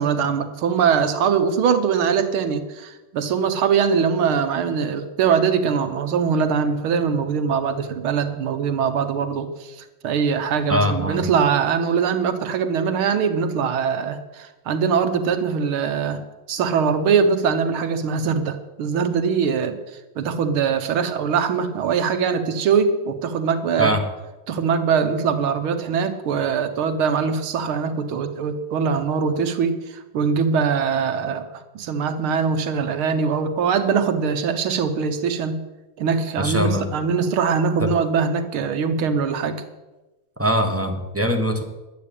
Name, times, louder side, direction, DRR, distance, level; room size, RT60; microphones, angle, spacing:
voice 1, 0.0-9.8 10.0-16.2 16.5-19.8 20.2-23.9 24.5-31.4 31.8-35.6 36.0-39.6, right 6 dB, 75° right, 8 dB, 1.9 m, -22 dB
voice 2, 10.7-11.2 23.8-24.0 36.4-36.9 37.8-37.9 40.4-41.6, equal, 10° right, 4 dB, 0.8 m, -22 dB
11.5 x 8.5 x 8.6 m, 1.1 s
omnidirectional pair, 2.4 m